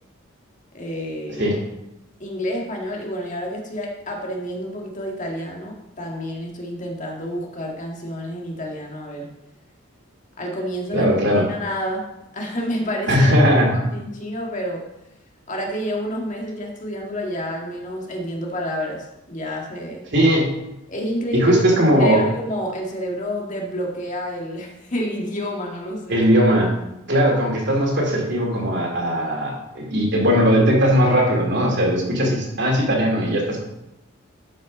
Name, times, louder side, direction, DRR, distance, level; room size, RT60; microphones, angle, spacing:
voice 1, 0.7-1.5 2.2-9.3 10.4-12.0 12.3-13.3 13.9-14.8 15.5-20.0 20.9-21.5 21.9-26.2 32.2-32.4, equal, 40° left, -1 dB, 2.0 m, -29 dB
voice 2, 10.9-11.5 13.1-13.8 20.1-20.5 21.3-22.2 26.1-26.7 27.1-33.6, equal, 55° right, -1 dB, 2.7 m, -18 dB
12.0 x 5.5 x 5.3 m, 0.89 s
head